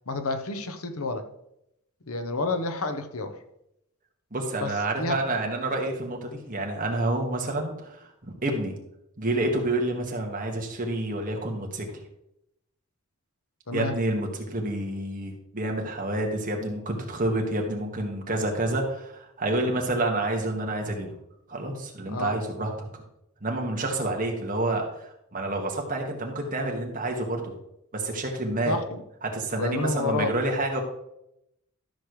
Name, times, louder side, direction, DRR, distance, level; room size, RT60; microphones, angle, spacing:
voice 1, 0.1-1.2 2.1-3.4 4.6-5.2 13.7-14.0 22.1-22.3 28.6-29.0 29.6-30.3, left 3 dB, 80° left, 8 dB, 1.0 m, -29 dB
voice 2, 4.3-8.8 9.2-11.9 13.7-21.1 21.5-23.0 23.4-27.5 27.9-28.8 29.2-30.8, right 2 dB, 40° right, 1 dB, 1.7 m, -28 dB
13.0 x 6.5 x 3.2 m, 0.81 s
head